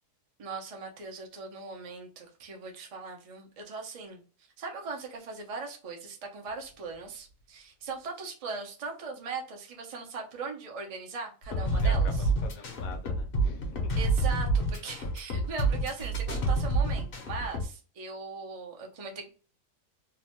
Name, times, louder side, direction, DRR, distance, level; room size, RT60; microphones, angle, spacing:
voice 1, 0.4-4.2 4.6-12.3 14.0-19.3, right 4 dB, 70° right, 0.3 m, -39 dB
sound 1, 11.4-17.7, right 2 dB, 55° left, 0.7 m, -28 dB
voice 2, 11.6-13.9, left 4 dB, 70° left, 1.0 m, -44 dB
2.8 x 2.1 x 2.9 m
omnidirectional pair, 1.6 m